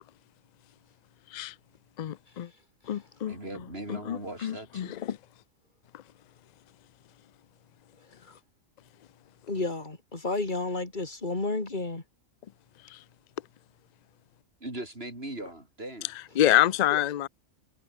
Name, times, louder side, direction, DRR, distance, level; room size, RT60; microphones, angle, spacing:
voice 1, 2.0-2.5 2.9-3.4 3.9-5.2 5.9-6.0 12.8-13.0 16.4-17.3, left 13 dB, 60° left, 0.4 m, -27 dB
voice 2, 3.3-5.0 14.6-16.1, right 1 dB, 45° right, 7.8 m, -39 dB
voice 3, 9.5-12.0, left 2 dB, 35° left, 2.9 m, -31 dB
omnidirectional pair, 1.4 m